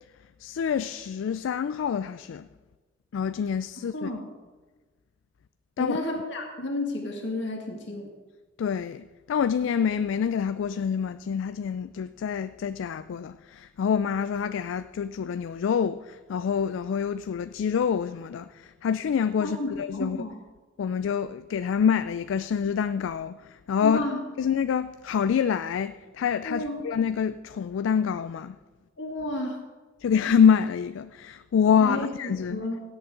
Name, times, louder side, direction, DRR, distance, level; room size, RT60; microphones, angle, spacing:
voice 1, 0.4-2.5 3.1-4.1 5.8-5.9 8.6-20.2 20.8-23.4 23.7-24.0 24.4-28.6 30.0-32.6, left 7 dB, 90° left, 0.3 m, -26 dB
voice 2, 3.9-4.3 5.8-8.1 19.4-20.4 23.8-24.2 26.4-26.9 29.0-29.6 31.8-32.8, left 1 dB, 70° left, 2.1 m, -31 dB
16.5 x 8.5 x 3.8 m
head